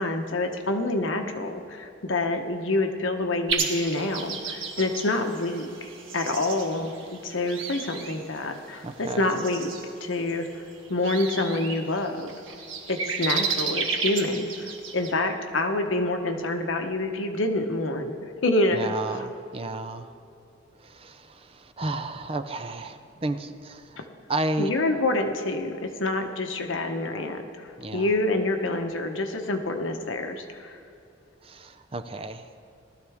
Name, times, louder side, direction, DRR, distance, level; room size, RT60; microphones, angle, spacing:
voice 1, 0.0-9.7 10.0-10.5 10.9-12.3 12.9-14.7 14.9-19.0 24.0-24.1 24.6-30.8, left 2 dB, 85° left, 5 dB, 1.1 m, -27 dB
sound 1, 3.5-15.1, right 5 dB, 85° right, 1.6 m, -33 dB
voice 2, 8.8-9.4 18.7-20.1 20.8-24.7 27.8-28.1 31.4-32.7, right 2 dB, 30° right, 8 dB, 0.5 m, -33 dB
18.5 x 12.5 x 3.6 m, 2.6 s
head